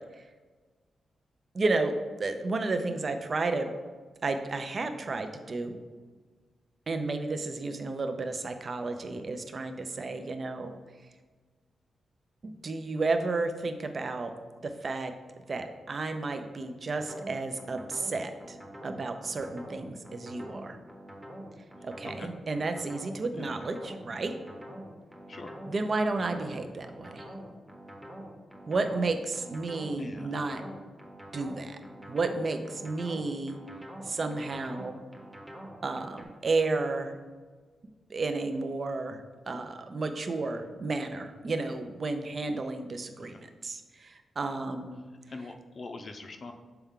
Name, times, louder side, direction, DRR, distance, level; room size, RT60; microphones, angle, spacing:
voice 1, 1.5-1.9 2.2-3.7 4.2-5.8 6.9-10.8 12.4-14.3 14.6-15.1 15.5-18.6 18.8-20.8 21.8-24.3 25.7-27.3 28.7-30.6 31.3-31.8 32.1-33.6 34.0-35.0 35.8-37.2 38.1-45.0, right 3 dB, 45° right, 7 dB, 0.6 m, -32 dB
sound 1, 17.0-36.2, equal, 10° right, 1.0 m, -45 dB
voice 2, 30.0-30.3 43.2-43.4 45.3-46.5, left 3 dB, 45° left, 5 dB, 0.6 m, -43 dB
6.8 x 4.5 x 3.7 m, 1.4 s
cardioid pair, 90°, 0 cm